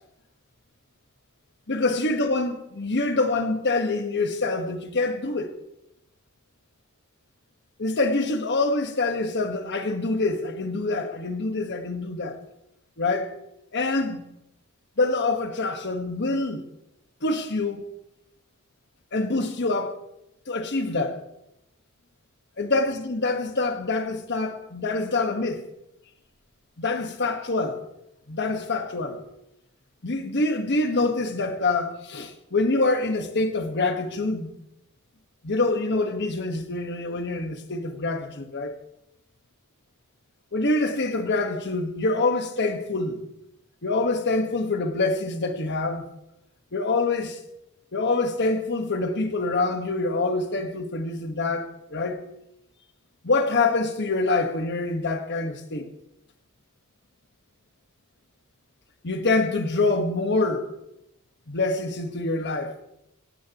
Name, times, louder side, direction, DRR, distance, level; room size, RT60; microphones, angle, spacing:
voice 1, 1.7-5.6 7.8-12.4 13.0-13.3 13.7-14.3 15.0-16.7 17.2-17.9 19.1-20.0 20.5-21.2 22.6-25.7 26.8-27.8 28.3-29.2 30.0-34.5 35.4-38.8 40.5-43.2 43.8-46.1 46.7-47.4 47.9-52.2 53.2-55.9 59.0-60.7 61.5-62.8, left 3 dB, 55° left, 1.5 m, -25 dB
17.0 x 16.0 x 3.0 m
head